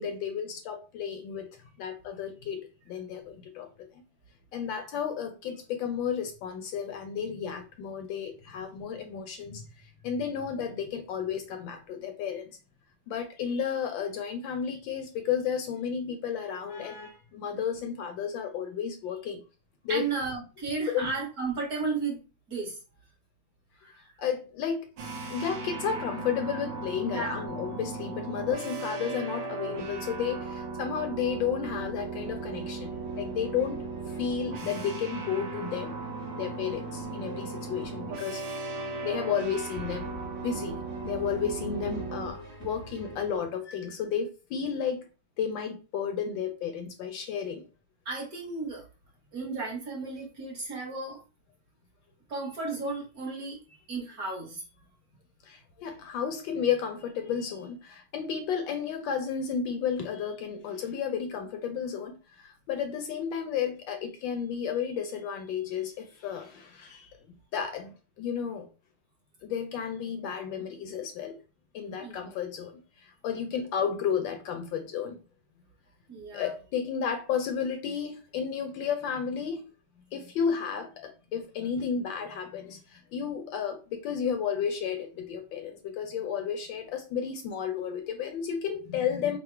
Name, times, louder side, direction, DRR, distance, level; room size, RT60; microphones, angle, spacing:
voice 1, 0.0-4.0 4.5-12.5 13.1-19.4 19.8-20.1 20.9-21.1 24.2-24.9 25.3-33.8 34.2-35.9 36.4-38.4 39.0-45.1 45.4-47.6 55.4-67.1 67.5-68.7 69.4-71.4 71.7-72.7 73.0-75.2 76.3-79.6 80.1-89.4, left 7 dB, 75° left, 1.2 m, -32 dB
voice 2, 19.9-22.2 22.5-22.8 23.8-23.9 27.1-27.5 48.0-48.8 49.3-51.2 52.3-53.6 53.9-54.6 72.0-72.3 76.1-76.5, right 4 dB, 50° right, 1.4 m, -34 dB
sound 1, 25.0-42.3, right 3 dB, 70° right, 1.3 m, -37 dB
sound 2, 32.2-43.4, right 1 dB, 25° right, 0.9 m, -45 dB
3.8 x 2.1 x 4.3 m
omnidirectional pair, 2.3 m